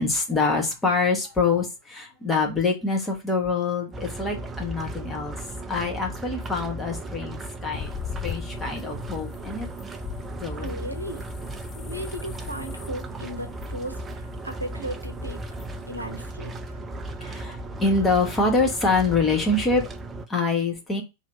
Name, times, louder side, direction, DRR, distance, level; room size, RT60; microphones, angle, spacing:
voice 1, 0.0-5.4 5.7-7.9 8.2-9.7 10.3-10.7 17.2-19.9 20.3-21.0, left 3 dB, 15° left, 1.4 m, -25 dB
sound 1, 3.9-20.3, right 1 dB, 20° right, 0.5 m, -36 dB
sound 2, 7.7-16.2, left 10 dB, 30° left, 0.4 m, -41 dB
voice 2, 10.6-11.2 11.8-15.4 15.9-16.8 17.2-17.4, right 1 dB, 85° right, 0.7 m, -36 dB
3.2 x 3.1 x 3.9 m
figure-of-eight pair, 90°, 0 cm